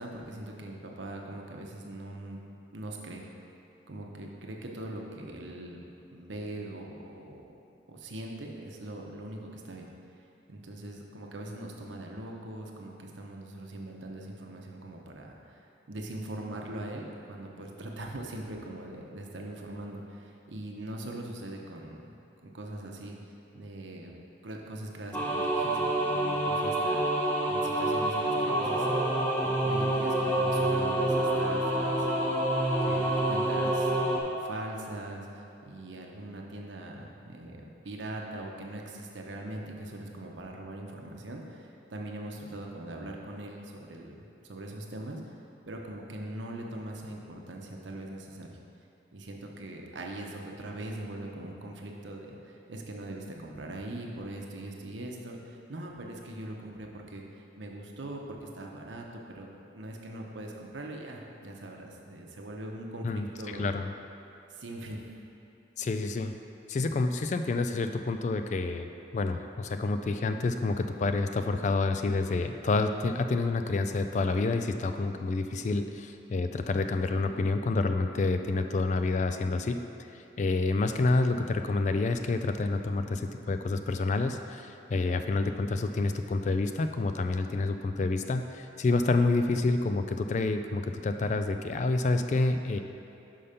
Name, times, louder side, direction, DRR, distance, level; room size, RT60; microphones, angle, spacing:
voice 1, 0.0-2.4 2.7-3.3 3.9-5.8 6.1-7.5 7.9-9.9 10.2-22.1 22.4-23.2 23.5-24.1 24.4-28.9 29.4-32.4 32.8-35.3 35.6-44.2 44.4-45.2 45.7-48.6 49.1-63.7 64.5-65.1 89.2-89.4, right 1 dB, 80° right, 0 dB, 0.8 m, -41 dB
sound 1, 25.1-34.2, right 1 dB, 10° left, 0.7 m, -27 dB
voice 2, 63.0-63.9 65.8-66.3 66.7-79.8 80.4-92.8, left 3 dB, 40° left, 7 dB, 0.3 m, -28 dB
5.5 x 5.1 x 5.6 m, 2.8 s
head